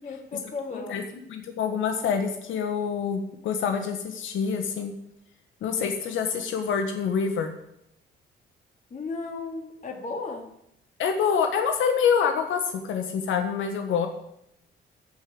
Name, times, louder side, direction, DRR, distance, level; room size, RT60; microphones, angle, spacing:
voice 1, 0.0-1.1 8.9-10.5, left 3 dB, 40° left, 2 dB, 2.8 m, -35 dB
voice 2, 0.7-1.0 1.3-4.9 5.6-7.5 11.0-14.1, left 6 dB, 80° left, 5 dB, 1.3 m, -26 dB
14.0 x 5.0 x 7.7 m, 0.77 s
cardioid pair, 90°, 20 cm